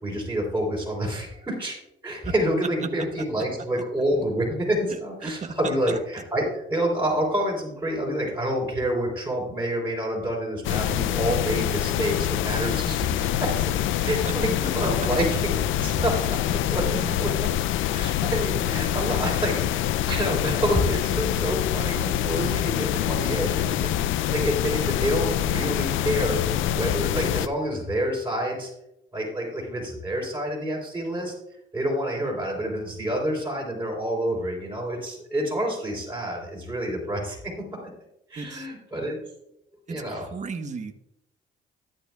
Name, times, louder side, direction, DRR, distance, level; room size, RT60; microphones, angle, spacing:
voice 1, 0.0-1.8 2.0-13.7 14.0-17.5 17.9-26.4 26.8-28.7 29.1-31.3 31.7-37.4 37.8-37.9 38.3-39.2 39.9-40.3, equal, 10° right, -7 dB, 3.6 m, -28 dB
voice 2, 4.9-6.0 14.1-14.3 38.4-38.7 39.9-40.9, right 5 dB, 35° right, 6 dB, 1.1 m, -35 dB
sound 1, 10.6-27.5, left 11 dB, 80° left, 0.4 m, -25 dB
13.5 x 9.9 x 2.3 m, 0.85 s
cardioid pair, 90°, 20 cm